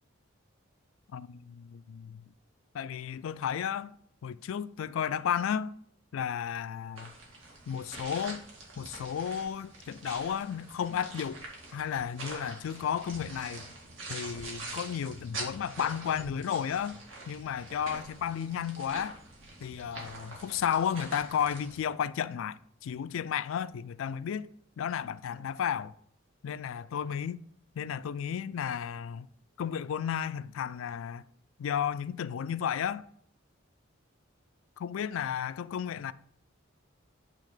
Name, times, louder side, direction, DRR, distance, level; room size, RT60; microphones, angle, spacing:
voice 1, 1.1-2.2 2.7-3.9 4.2-5.8 6.1-7.1 7.7-8.4 8.8-11.4 11.7-13.7 14.1-19.2 19.6-24.5 24.8-25.9 26.4-27.4 27.8-29.3 29.6-31.2 31.6-33.0 34.8-36.1, left 8 dB, 80° left, 0.3 m, -33 dB
sound 1, 7.0-21.8, right 2 dB, 75° right, 1.9 m, -45 dB
8.6 x 3.4 x 4.9 m
head